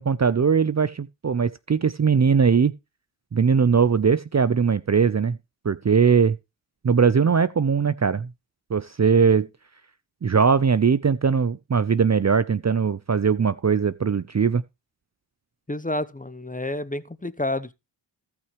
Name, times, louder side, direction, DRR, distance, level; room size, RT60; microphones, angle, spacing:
voice 1, 0.0-2.7 3.3-5.4 5.6-6.4 6.8-8.3 8.7-9.5 10.2-14.6, right 6 dB, 35° right, 0.7 m, -20 dB
voice 2, 15.7-17.7, left 2 dB, 15° left, 1.0 m, -29 dB
17.5 x 5.8 x 3.2 m
cardioid pair, 45°, 50 cm